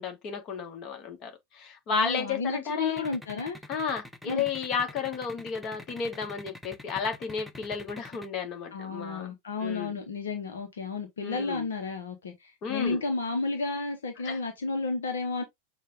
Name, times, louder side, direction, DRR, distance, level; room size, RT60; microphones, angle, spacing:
voice 1, 0.0-3.1 3.7-9.3 9.6-10.0 11.2-11.7 12.6-13.0 14.2-14.4, left 6 dB, 35° left, 1.4 m, -32 dB
voice 2, 1.9-3.6 4.3-4.5 8.7-15.4, left 3 dB, 65° left, 0.9 m, -32 dB
sound 1, 3.0-8.3, left 1 dB, ahead, 0.6 m, -45 dB
6.5 x 2.4 x 3.5 m
figure-of-eight pair, 90°, 0 cm